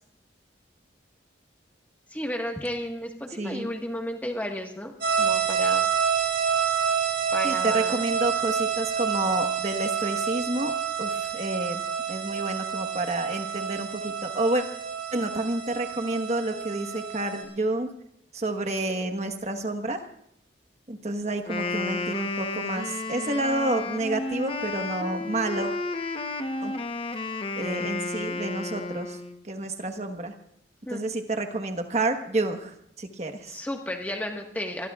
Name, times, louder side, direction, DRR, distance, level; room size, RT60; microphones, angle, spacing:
voice 1, 2.1-5.9 7.3-8.0 27.8-27.9 30.8-31.0 33.5-34.9, left 1 dB, 10° left, 2 dB, 1.5 m, -33 dB
voice 2, 3.4-3.7 7.4-11.8 12.1-14.6 15.1-17.9 18.3-20.0 20.9-25.7 26.6-26.7 27.5-30.3 30.9-33.6, right 2 dB, 35° right, 6 dB, 1.3 m, -29 dB
sound 1, 5.0-17.4, right 7 dB, 60° right, 6.9 m, -28 dB
Wind instrument woodwind instrument, 21.4-29.4, left 3 dB, 30° left, 1.0 m, -32 dB
26.5 x 21.5 x 2.4 m, 0.75 s
head